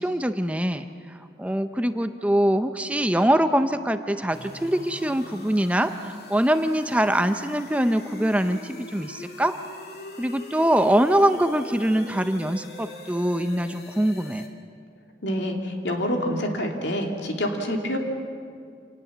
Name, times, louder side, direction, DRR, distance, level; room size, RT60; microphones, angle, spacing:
voice 1, 0.0-9.6 10.2-14.4, right 1 dB, 5° right, 9 dB, 0.6 m, -23 dB
sound 1, 4.3-14.5, left 2 dB, 60° left, 2.2 m, -42 dB
voice 2, 15.2-18.0, equal, 85° left, 2 dB, 2.8 m, -27 dB
27.0 x 19.0 x 7.3 m, 2.3 s
head